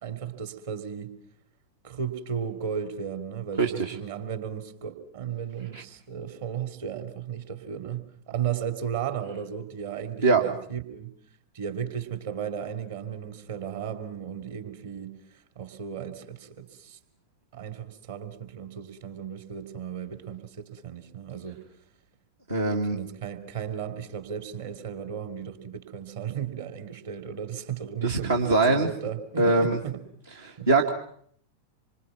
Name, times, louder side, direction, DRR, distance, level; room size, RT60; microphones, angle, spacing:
voice 1, 0.0-1.1 1.8-11.1 11.5-17.0 17.5-21.6 22.9-30.0 30.6-30.7, right 8 dB, 60° right, 8 dB, 3.0 m, -35 dB
voice 2, 3.6-4.0 5.7-5.8 10.2-10.4 22.5-23.0 28.0-28.9 29.4-29.8 30.7-30.9, right 3 dB, 75° right, 0 dB, 2.1 m, -22 dB
27.0 x 25.0 x 6.0 m, 0.64 s
figure-of-eight pair, 90°, 0 cm